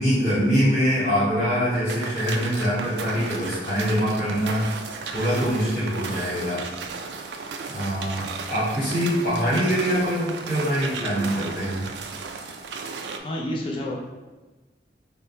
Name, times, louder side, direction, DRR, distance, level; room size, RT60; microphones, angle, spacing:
voice 1, 0.0-4.6 5.1-6.6 7.7-11.8, equal, 50° left, -11 dB, 1.3 m, -24 dB
sound 1, 1.9-13.2, right 4 dB, 75° right, 0.3 m, -35 dB
voice 2, 13.2-13.9, left 1 dB, 30° left, -3 dB, 0.5 m, -29 dB
3.7 x 2.0 x 4.2 m, 1.2 s
head